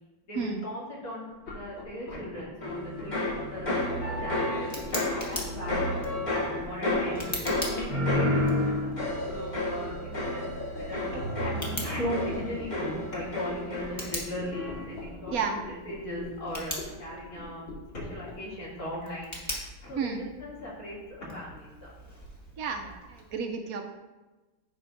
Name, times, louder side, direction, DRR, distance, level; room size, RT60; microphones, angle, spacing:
voice 1, 0.2-8.9 9.3-17.6 17.9-21.9 22.8-22.9, left 1 dB, 50° left, -7 dB, 2.9 m, -38 dB
sound 1, 1.4-18.4, left 4 dB, 90° left, 2.4 m, -42 dB
sound 2, 2.6-14.2 14.5-15.0, left 1 dB, 25° left, 1.2 m, -31 dB
Tick, 3.7-23.4, equal, 10° left, 1.2 m, -43 dB
voice 2, 15.3-15.6 20.0-20.2 22.6-23.9, right 5 dB, 70° right, 5 dB, 0.9 m, -32 dB
9.1 x 6.2 x 2.5 m, 1.2 s
omnidirectional pair, 2.1 m